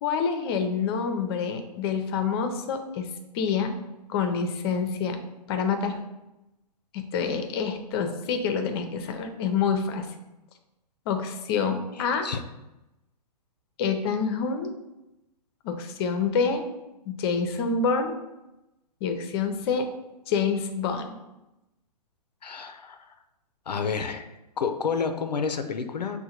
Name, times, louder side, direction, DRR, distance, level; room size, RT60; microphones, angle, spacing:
voice 1, 0.0-3.1 3.3-3.7 4.1-5.2 5.5-6.0 6.9-10.1 11.1-12.3 13.8-14.7 15.6-16.7 17.1-18.2 19.0-19.9 20.3-21.2, left 5 dB, 40° left, 7 dB, 0.5 m, -27 dB
voice 2, 12.0-12.4 22.4-23.1 23.7-24.2 24.6-26.2, left 5 dB, 85° left, 7 dB, 0.5 m, -30 dB
6.3 x 2.2 x 2.8 m, 0.96 s
hypercardioid pair, 125°, 21 cm